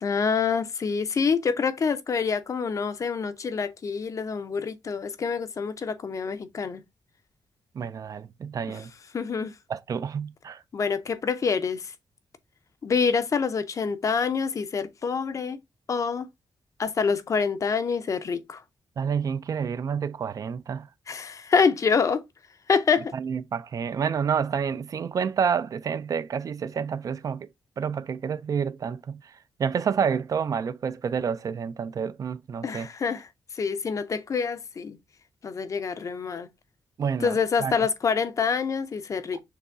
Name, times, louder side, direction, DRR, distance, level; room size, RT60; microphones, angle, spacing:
voice 1, 0.0-6.8 8.7-8.8 9.1-9.5 10.7-11.9 12.8-15.6 15.9-16.3 16.8-18.6 21.1-22.2 22.7-23.1 32.6-33.3 33.5-35.0 35.4-36.5 37.2-39.4, left 5 dB, 40° left, 0.6 m, -26 dB
voice 2, 7.7-8.9 9.7-10.6 19.0-20.9 23.1-27.5 27.8-32.9 37.0-37.7, right 7 dB, 45° right, 0.4 m, -29 dB
6.6 x 3.0 x 2.6 m
wide cardioid pair, 140°, 8 cm